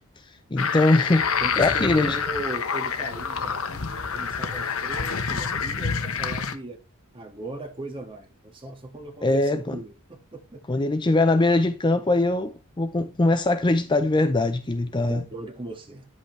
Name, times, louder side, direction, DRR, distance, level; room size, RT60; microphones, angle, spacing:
voice 1, 0.5-2.2 9.2-9.8 10.7-15.2, left 2 dB, 20° left, 0.5 m, -22 dB
sound 1, 0.6-6.5, left 6 dB, 65° left, 1.0 m, -27 dB
voice 2, 1.4-6.8 7.1-10.6 15.1-16.1, right 2 dB, 25° right, 1.8 m, -38 dB
10.0 x 8.3 x 3.2 m
head